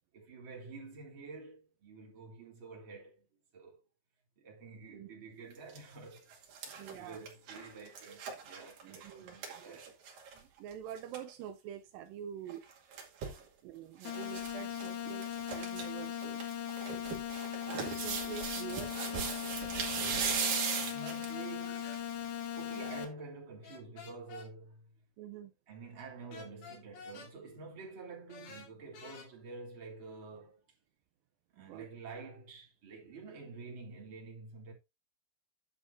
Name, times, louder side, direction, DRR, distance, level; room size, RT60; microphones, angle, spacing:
voice 1, 0.1-3.2 3.5-3.8 4.4-10.0 13.1-13.4 13.8-14.1 19.7-25.0 25.7-30.6 31.5-34.7, right 4 dB, 30° right, 3.2 m, -49 dB
sound 1, 5.5-5.8 6.2-10.4 10.7-10.8 11.0-11.2 12.5-13.4 14.0-14.5 14.8-14.9 15.2-15.8 16.2-21.4 21.9-22.0, right 6 dB, 55° right, 3.9 m, -38 dB
voice 2, 6.8-7.2 8.8-9.8 10.4-12.6 13.6-16.4 17.3-19.0 25.2-25.5 31.6-31.9, right 10 dB, 85° right, 2.0 m, -46 dB
sound 2, 14.1-23.1, left 10 dB, 75° left, 3.6 m, -39 dB
sound 3, 19.0-19.2 21.0-22.0 23.6-24.5 26.3-27.3 28.3-29.3, left 5 dB, 55° left, 3.5 m, -50 dB
10.5 x 8.4 x 2.6 m
omnidirectional pair, 4.9 m